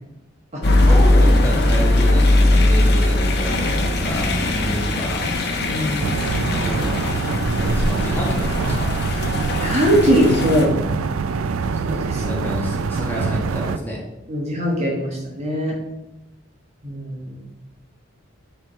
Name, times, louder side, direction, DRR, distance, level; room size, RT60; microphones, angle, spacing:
sound 1, 0.6-10.7, left 1 dB, 50° left, 0.9 m, -19 dB
voice 1, 0.6-5.2 5.8-9.4 12.1-14.0, equal, 10° left, -4 dB, 1.5 m, -30 dB
voice 2, 5.6-6.0 9.6-10.7 11.8-12.3 14.3-15.7 16.8-17.4, equal, 30° right, -2 dB, 1.3 m, -21 dB
sound 2, 6.0-13.8, right 5 dB, 85° right, 0.4 m, -25 dB
9.3 x 3.4 x 4.2 m, 0.98 s
head